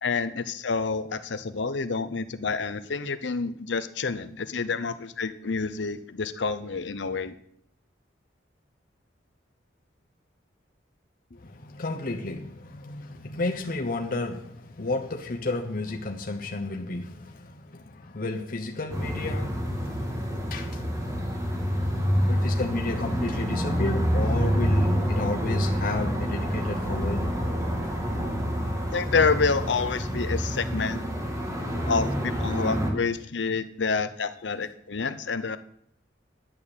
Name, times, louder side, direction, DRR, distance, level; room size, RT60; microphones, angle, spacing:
voice 1, 0.0-7.3 28.9-31.0 31.9-35.6, left 4 dB, 75° left, 0.7 m, -28 dB
voice 2, 11.3-20.2 20.5-21.0 22.3-27.3 27.8-27.9, left 2 dB, 50° left, 0.9 m, -32 dB
sound 1, 18.9-32.9, equal, 15° right, 1.9 m, -27 dB
10.5 x 6.5 x 7.3 m
head